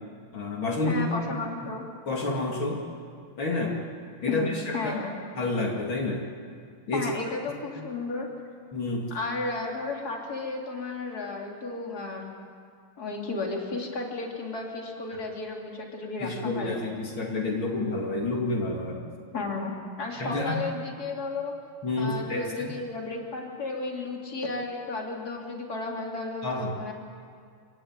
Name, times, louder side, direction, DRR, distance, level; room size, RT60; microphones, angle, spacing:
voice 1, 0.3-1.1 2.1-2.8 3.4-3.8 4.2-4.9 5.4-6.2 6.9-7.1 8.7-9.1 16.2-19.0 20.2-20.7 21.8-22.7 26.4-26.7, left 2 dB, 65° left, -1 dB, 3.3 m, -29 dB
voice 2, 0.9-1.8 4.3-5.2 6.9-8.3 9.1-12.3 13.0-16.8 19.3-19.7 20.0-21.5 22.0-26.9, left 3 dB, 45° left, 0 dB, 3.5 m, -33 dB
26.5 x 16.5 x 9.6 m, 2.2 s
omnidirectional pair, 2.4 m